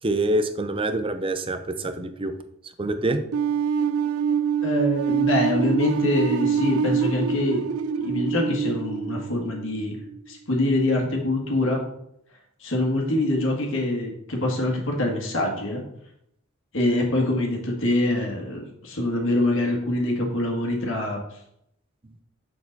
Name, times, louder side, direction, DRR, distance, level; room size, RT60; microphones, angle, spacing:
voice 1, 0.0-2.3 2.8-3.2, right 2 dB, 25° right, 9 dB, 0.6 m, -25 dB
sound 1, 3.3-10.2, right 7 dB, 90° right, 0.4 m, -25 dB
voice 2, 4.6-7.7 8.0-10.0 10.3-11.8 12.6-15.8 16.7-21.2, left 1 dB, 65° left, 0 dB, 1.8 m, -24 dB
6.8 x 6.7 x 4.0 m, 0.76 s
head